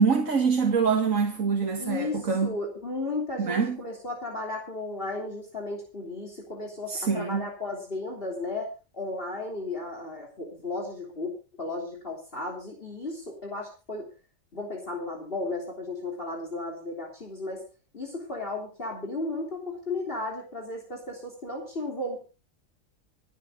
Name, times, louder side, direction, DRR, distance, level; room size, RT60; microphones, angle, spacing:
voice 1, 0.0-2.6 3.4-3.8 6.9-7.5, right 5 dB, 70° right, 2.4 m, -24 dB
voice 2, 1.8-11.3 11.6-14.1 14.5-17.6 17.9-22.2, left 2 dB, 40° left, 3.7 m, -34 dB
27.5 x 9.3 x 2.8 m
omnidirectional pair, 1.4 m